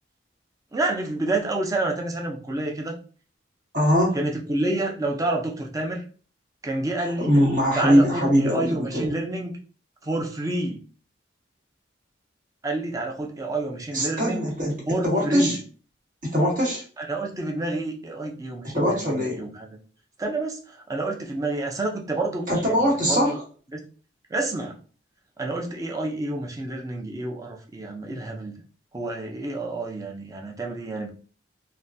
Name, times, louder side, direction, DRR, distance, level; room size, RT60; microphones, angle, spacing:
voice 1, 0.7-3.0 4.1-6.0 6.6-7.4 7.7-9.6 10.0-10.8 12.6-14.5 14.9-15.6 17.0-19.8 20.2-23.4 23.7-23.8 24.3-24.8 25.4-28.6 28.9-31.1, right 2 dB, 20° right, 2 dB, 0.5 m, -29 dB
voice 2, 3.7-4.2 7.2-9.1 13.9-15.6 16.2-16.8 18.7-19.4 22.5-23.4, equal, 45° right, -2 dB, 1.3 m, -22 dB
3.6 x 2.2 x 2.6 m, 0.40 s
head